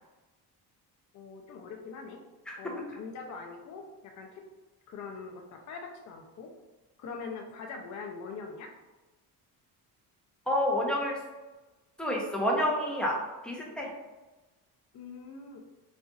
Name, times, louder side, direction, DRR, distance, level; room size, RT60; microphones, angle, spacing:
voice 1, 1.1-2.2 2.6-4.4 4.9-6.5 7.0-8.7 14.9-15.6, left 4 dB, 45° left, 2 dB, 0.5 m, -43 dB
voice 2, 10.5-11.2 12.0-13.9, left 1 dB, ahead, -3 dB, 0.7 m, -29 dB
4.1 x 2.5 x 2.4 m, 1.1 s
cardioid pair, 100°, 40 cm